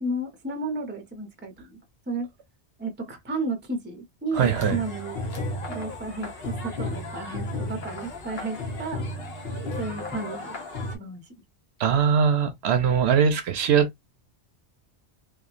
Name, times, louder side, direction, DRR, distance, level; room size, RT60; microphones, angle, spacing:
voice 1, 0.0-1.8 2.1-2.3 2.8-5.2 5.7-9.0 9.8-10.6 10.9-11.2, right 2 dB, 10° right, 0.6 m, -33 dB
sound 1, 4.3-11.0, left 2 dB, 60° left, 0.9 m, -33 dB
voice 2, 4.3-4.8 11.8-14.1, right 7 dB, 70° right, 0.8 m, -21 dB
2.9 x 2.3 x 2.4 m
omnidirectional pair, 1.2 m